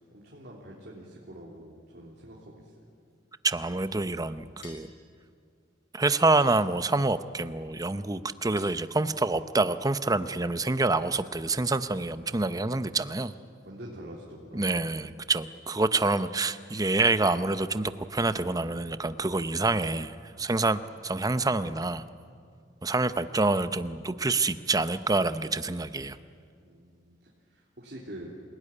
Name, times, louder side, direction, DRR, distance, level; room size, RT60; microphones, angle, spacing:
voice 1, 0.0-2.7 13.6-14.8 26.6-28.3, right 1 dB, 60° right, -3 dB, 3.4 m, -45 dB
voice 2, 3.4-4.9 5.9-13.3 14.5-22.0 22.8-26.2, right 3 dB, 20° right, 12 dB, 0.7 m, -27 dB
sound 1, 4.6-5.0 6.4-7.1 8.6-9.3, left 5 dB, 90° left, 4.7 m, -53 dB
27.0 x 17.5 x 10.0 m, 2.2 s
head